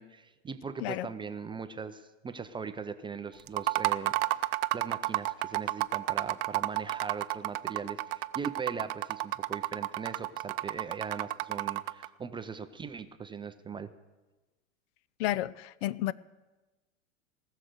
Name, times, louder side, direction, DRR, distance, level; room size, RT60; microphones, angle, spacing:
voice 1, 0.0-13.9, right 5 dB, 15° right, 0.4 m, -40 dB
sound 1, 3.5-12.1, right 19 dB, 55° right, 0.6 m, -31 dB
voice 2, 15.2-16.1, left 14 dB, 50° left, 0.5 m, -31 dB
19.5 x 6.6 x 7.9 m
hypercardioid pair, 100°, 40 cm